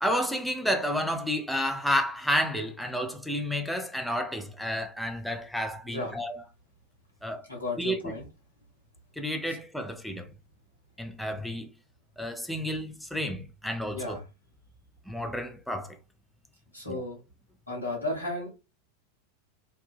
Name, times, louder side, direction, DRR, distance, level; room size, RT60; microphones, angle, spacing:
voice 1, 0.0-6.4 7.2-7.5 7.8-8.1 9.2-10.3 11.0-11.7 12.2-14.2 15.1-16.0 16.9-17.0, equal, ahead, 0.5 m, -31 dB
voice 2, 7.5-8.2 13.9-14.2 16.7-17.2 17.7-18.5, left 2 dB, 90° left, 1.3 m, -34 dB
2.6 x 2.2 x 2.6 m
figure-of-eight pair, 90°, 0 cm